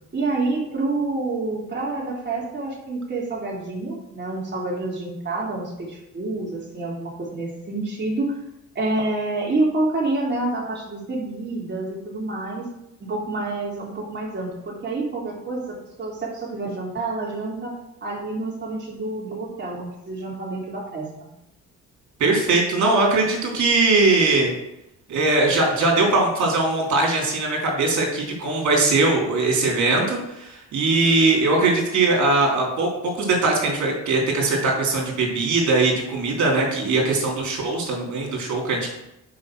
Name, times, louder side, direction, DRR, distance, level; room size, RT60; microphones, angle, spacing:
voice 1, 0.1-8.3 8.8-12.6 13.0-15.6 16.0-17.8 18.0-21.1, right 2 dB, 35° right, -3 dB, 3.8 m, -28 dB
voice 2, 22.2-24.5 25.1-38.9, right 3 dB, 70° right, -1 dB, 3.5 m, -20 dB
7.5 x 5.6 x 6.3 m, 0.87 s
cardioid pair, 90°, 30 cm